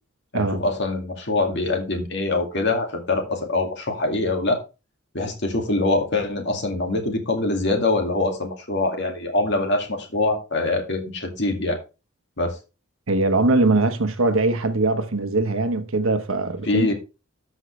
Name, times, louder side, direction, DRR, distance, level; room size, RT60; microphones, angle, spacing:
voice 1, 0.3-4.6 5.1-11.8 12.4-12.6 16.6-16.9, left 2 dB, 55° left, 2.2 m, -24 dB
voice 2, 13.1-16.9, right 2 dB, 75° right, 1.2 m, -21 dB
13.0 x 5.6 x 3.3 m
head